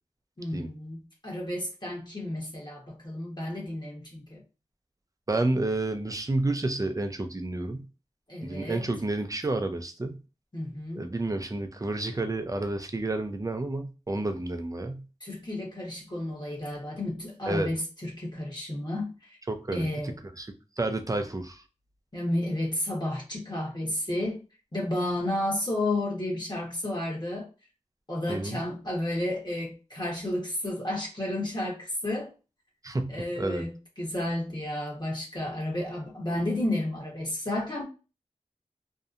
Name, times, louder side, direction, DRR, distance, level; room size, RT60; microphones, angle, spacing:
voice 1, 0.4-1.0 1.2-4.4 8.3-8.8 10.5-11.1 15.2-19.4 19.7-20.1 22.1-24.4 24.7-27.5 28.1-32.3 33.1-37.8, left 1 dB, 35° left, 1.0 m, -32 dB
voice 2, 5.3-7.8 8.4-10.2 11.0-15.0 17.5-17.7 19.5-20.5 20.8-21.6 28.3-28.6 32.8-33.1 33.4-33.6, right 2 dB, 30° right, 0.4 m, -30 dB
2.7 x 2.1 x 2.4 m
wide cardioid pair, 45°, 12 cm